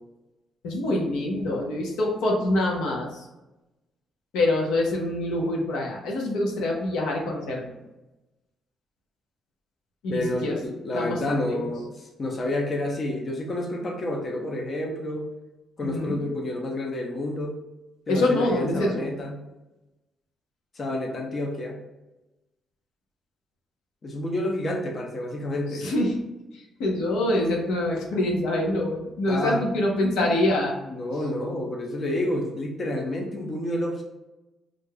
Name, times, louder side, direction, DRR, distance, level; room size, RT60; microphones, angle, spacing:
voice 1, 0.6-3.1 4.3-7.8 10.0-10.6 10.9-11.7 15.8-16.2 18.1-19.1 25.8-26.1 26.8-30.7, left 1 dB, 90° left, -1 dB, 0.8 m, -25 dB
voice 2, 10.1-15.3 15.8-17.6 18.1-19.4 20.8-21.8 24.0-25.9 29.3-29.6 30.9-34.0, left 1 dB, 40° left, 1 dB, 0.7 m, -29 dB
4.6 x 2.6 x 2.2 m, 1.0 s
cardioid pair, 90°, 0 cm